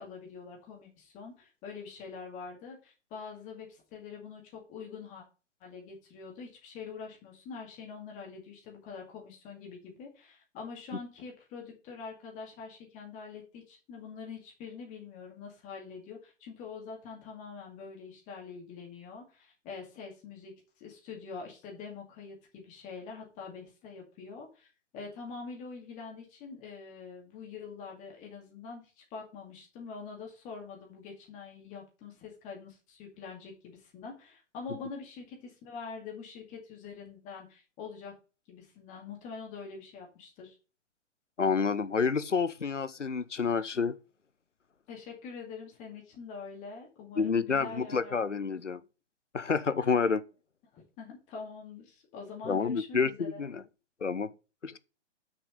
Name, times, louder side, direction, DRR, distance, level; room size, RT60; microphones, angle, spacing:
voice 1, 0.0-5.2 5.6-38.1 38.5-40.6 44.9-48.4 50.7-53.4, left 5 dB, 20° left, 2.5 m, -45 dB
voice 2, 41.4-44.0 47.2-48.8 49.3-50.2 52.5-53.6 54.0-54.3 54.6-54.8, left 5 dB, 85° left, 0.8 m, -29 dB
6.6 x 5.8 x 6.4 m
figure-of-eight pair, 125°, 35 cm